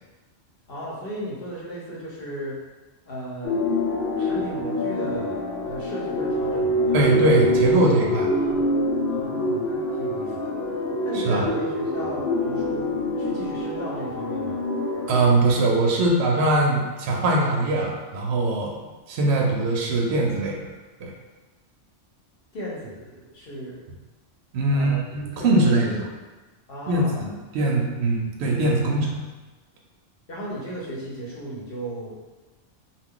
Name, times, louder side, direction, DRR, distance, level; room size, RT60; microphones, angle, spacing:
voice 1, 0.7-2.6 3.1-3.6 4.2-7.4 8.3-8.7 9.1-10.5 11.0-14.6 22.5-23.8 24.7-25.0 25.4-25.9 26.7-27.3 30.3-32.1, equal, 55° left, -6 dB, 1.0 m, -35 dB
sound 1, 3.4-15.2, left 1 dB, 75° left, 0.9 m, -25 dB
voice 2, 6.9-8.3 11.1-11.4 15.1-18.8 19.1-20.6 21.0-21.1 24.5-26.0 26.9-29.2, right 2 dB, 65° right, -1 dB, 0.7 m, -21 dB
2.3 x 2.3 x 3.7 m, 1.2 s
omnidirectional pair, 1.3 m